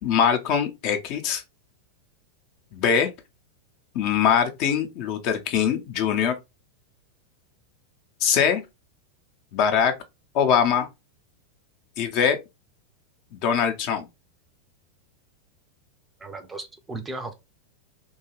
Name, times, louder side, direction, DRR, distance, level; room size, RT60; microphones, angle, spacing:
voice 1, 0.0-1.4 2.7-3.1 3.9-6.3 8.2-8.6 9.5-9.9 10.3-10.9 12.0-12.4 13.3-14.0, left 7 dB, 45° left, 0.5 m, -22 dB
voice 2, 16.2-17.3, right 2 dB, 15° right, 0.4 m, -36 dB
2.8 x 2.3 x 2.9 m
figure-of-eight pair, 90°, 0 cm